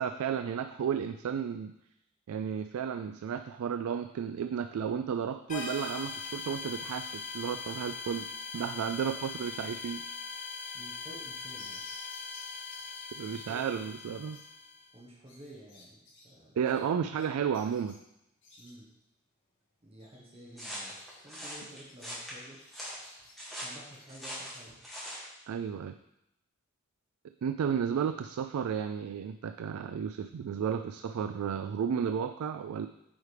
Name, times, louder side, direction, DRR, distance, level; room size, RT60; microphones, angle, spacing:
voice 1, 0.0-1.7 2.3-8.3 8.5-10.0 13.2-14.4 16.6-18.0 25.5-25.9 27.4-32.9, right 7 dB, 90° right, 8 dB, 0.3 m, -33 dB
sound 1, 5.5-14.9, left 5 dB, 35° left, 1.2 m, -41 dB
voice 2, 10.7-12.3 13.3-13.9 14.9-16.6 18.6-18.9 19.8-20.9 21.2-22.6 23.6-24.8, right 1 dB, 30° right, -3 dB, 1.1 m, -52 dB
sound 2, 11.6-24.7, left 2 dB, 60° left, 1.6 m, -58 dB
sound 3, 20.6-25.3, equal, ahead, 1.9 m, -41 dB
9.0 x 4.9 x 3.3 m, 0.85 s
head